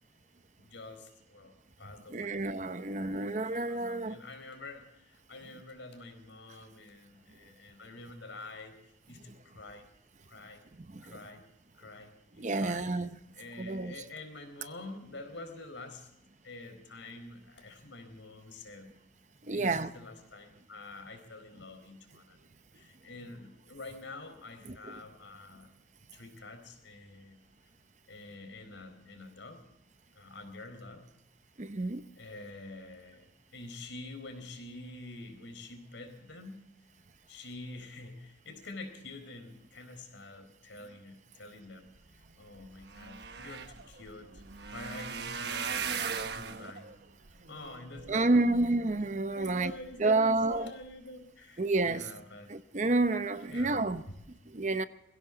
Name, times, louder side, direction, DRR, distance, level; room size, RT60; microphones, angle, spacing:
voice 1, 0.6-2.9 3.2-9.9 10.2-10.6 11.0-11.5 11.8-13.0 13.3-16.1 16.4-18.9 19.4-22.4 22.7-25.7 26.1-27.5 28.1-29.6 30.1-31.1 32.2-36.7 37.3-41.9 42.4-44.4 44.7-47.0 47.5-48.9 49.4-52.5 53.5-54.2, left 2 dB, 80° left, 4.2 m, -47 dB
voice 2, 2.1-4.2 9.3-9.4 10.8-11.2 12.4-13.2 13.6-13.9 19.4-19.9 24.7-25.0 31.6-32.0 48.1-49.7 50.0-50.7 51.6-52.1 52.5-54.0 54.3-54.9, right 2 dB, 40° right, 0.7 m, -29 dB
sound 1, 42.3-42.4 42.6-48.9 49.5-49.9 50.4-50.6 50.8-50.9, right 6 dB, 60° right, 1.2 m, -39 dB
21.5 x 16.5 x 3.9 m
head